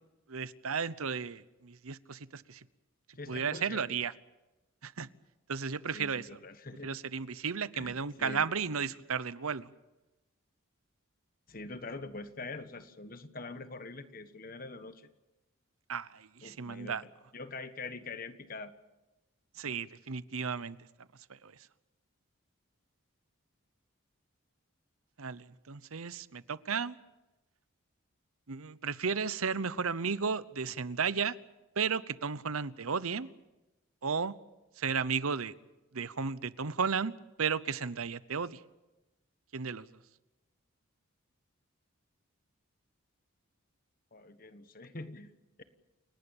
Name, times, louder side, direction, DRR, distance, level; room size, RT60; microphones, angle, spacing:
voice 1, 0.3-2.6 3.3-4.1 4.8-5.1 5.5-6.3 6.8-9.7 15.9-17.0 19.6-20.8 21.4-21.5 25.2-27.0 28.5-31.4 31.8-33.3 34.0-34.3 34.8-35.5 35.9-37.1 37.4-38.6 39.5-39.9, right 6 dB, 90° right, 16 dB, 0.9 m, -34 dB
voice 2, 3.1-3.9 5.9-7.0 7.7-8.5 11.5-15.1 16.4-18.7 44.1-45.6, left 3 dB, 40° left, 10 dB, 1.4 m, -44 dB
29.0 x 18.0 x 7.2 m, 1.0 s
head